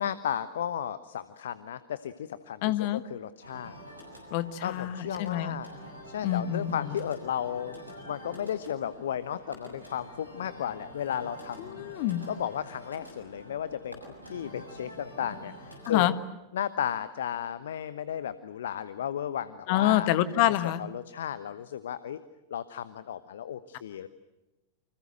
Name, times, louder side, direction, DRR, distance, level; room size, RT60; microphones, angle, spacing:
voice 1, 0.0-3.8 4.6-5.7 6.0-7.8 8.0-11.9 12.3-16.1 16.5-20.1 20.5-22.2 22.5-24.1, left 9 dB, 60° left, 15 dB, 1.0 m, -34 dB
voice 2, 2.6-3.0 4.3-5.6 6.2-6.9 11.7-12.2 15.9-16.1 19.7-20.8, left 13 dB, 45° left, 13 dB, 1.5 m, -27 dB
sound 1, 3.4-16.0, equal, 85° right, 7.1 m, -47 dB
29.0 x 26.0 x 7.8 m, 1.1 s
figure-of-eight pair, 90°, 0 cm